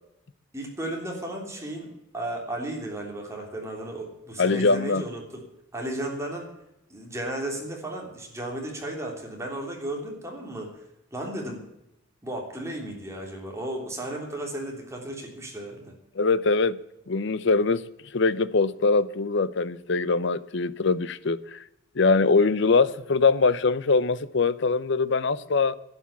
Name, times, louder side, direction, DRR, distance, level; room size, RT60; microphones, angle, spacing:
voice 1, 0.5-5.4 5.7-6.5 6.9-10.7 11.1-11.6 12.2-15.9, right 1 dB, 15° right, 3.3 m, -34 dB
voice 2, 4.4-5.0 16.2-16.8 17.1-17.8 18.1-21.6 22.0-25.8, left 4 dB, 60° left, 0.6 m, -22 dB
11.5 x 10.0 x 8.3 m
head